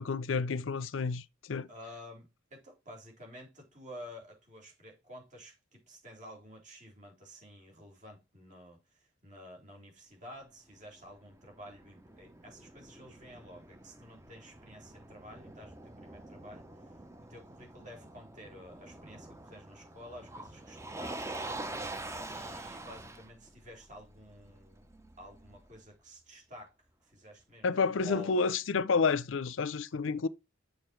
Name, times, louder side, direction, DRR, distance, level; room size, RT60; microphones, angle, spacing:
voice 1, 0.0-1.7 27.6-30.3, left 4 dB, 70° left, 0.5 m, -30 dB
voice 2, 1.7-16.9 17.2-21.9 22.3-24.9 25.2-26.7 27.0-27.7 28.0-28.4, equal, 35° right, 3.9 m, -51 dB
Motor vehicle (road), 10.7-25.8, right 2 dB, 15° right, 0.7 m, -46 dB
6.9 x 6.5 x 4.5 m
head